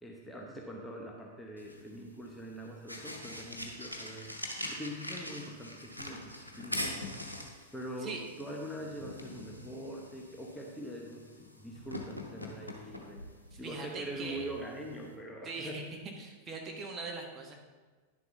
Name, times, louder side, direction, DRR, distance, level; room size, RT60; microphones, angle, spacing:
voice 1, 0.0-4.3 4.7-7.2 7.7-13.3 13.6-15.8, right 1 dB, 5° left, -1 dB, 1.0 m, -43 dB
sound 1, 1.6-15.2, left 1 dB, 85° left, 0.9 m, -44 dB
voice 2, 13.5-14.4 15.4-15.8 16.2-17.5, right 3 dB, 25° right, 0 dB, 1.6 m, -41 dB
10.5 x 7.1 x 3.9 m, 1.3 s
figure-of-eight pair, 90°, 0 cm